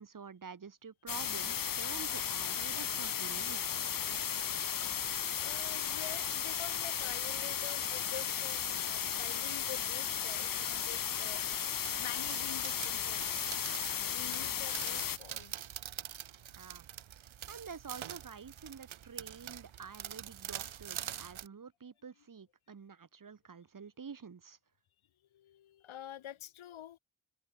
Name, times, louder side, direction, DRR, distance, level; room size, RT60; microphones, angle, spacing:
voice 1, 0.0-3.8 16.6-16.9 17.5-24.6, right 6 dB, 40° right, 2.0 m, -48 dB
sound 1, 1.1-15.2, left 8 dB, 45° left, 1.0 m, -35 dB
voice 2, 5.4-11.7 12.0-13.5 14.0-15.6 25.3-27.0, left 11 dB, 80° left, 1.7 m, -48 dB
sound 2, 11.8-21.5, right 10 dB, 80° right, 2.3 m, -45 dB
cardioid pair, 65°, 47 cm